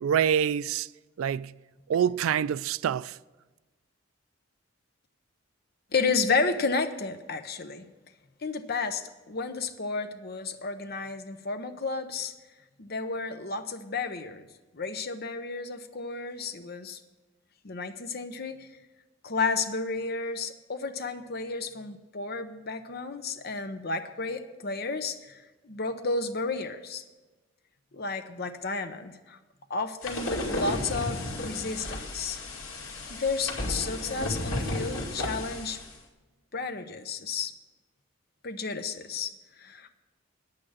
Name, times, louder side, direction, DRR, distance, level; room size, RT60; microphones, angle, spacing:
voice 1, 0.0-0.9 1.2-1.5 1.9-3.2, right 8 dB, 80° right, 0.3 m, -26 dB
voice 2, 5.9-7.9 8.4-12.3 12.8-14.5 14.7-17.0 17.6-18.7 19.2-27.0 27.9-29.4 29.7-32.4 33.1-35.8 36.5-37.5 38.4-39.9, left 4 dB, 50° left, 0.8 m, -32 dB
sound 1, 30.0-35.9, left 2 dB, 80° left, 2.3 m, -33 dB
9.7 x 8.7 x 6.3 m
head